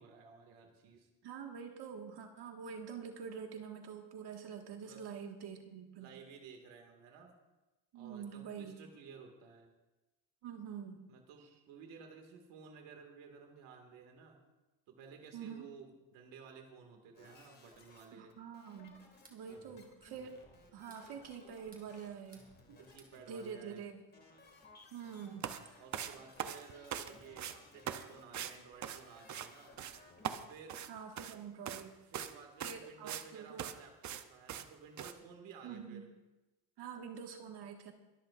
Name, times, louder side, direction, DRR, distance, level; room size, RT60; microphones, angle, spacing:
voice 1, 0.0-1.1 4.8-5.1 6.0-7.3 7.9-9.7 11.1-14.4 14.9-18.3 19.5-19.8 22.8-23.8 25.8-29.8 30.5-30.8 32.0-36.1, right 5 dB, 80° right, 2 dB, 2.2 m, -55 dB
voice 2, 1.2-6.1 7.9-8.8 10.4-11.0 11.4-11.5 15.3-15.7 18.1-19.0 19.3-20.3 20.7-22.4 22.7-22.8 23.3-24.0 24.9-25.5 30.9-31.9 32.6-33.7 35.6-36.0 36.8-37.9, right 7 dB, 60° right, 2 dB, 1.8 m, -46 dB
sound 1, 17.1-18.0 18.3-30.6, left 3 dB, 20° left, 2.1 m, -61 dB
sound 2, 19.0-19.4 20.6-21.1 21.5-22.5 22.8-23.2, right 3 dB, 20° right, 2.4 m, -63 dB
sound 3, 25.4-25.6 25.9-27.1 27.4-27.6 27.9-28.0 28.3-28.5 28.8-29.5 29.8-30.0 30.2-31.4 31.7-31.8 32.1-32.3 32.6-33.3 33.6-33.7 34.0-34.2 34.5-34.7 35.0-35.1, right 9 dB, 40° right, 0.7 m, -41 dB
23.0 x 13.5 x 2.5 m, 1.1 s
cardioid pair, 165°, 44 cm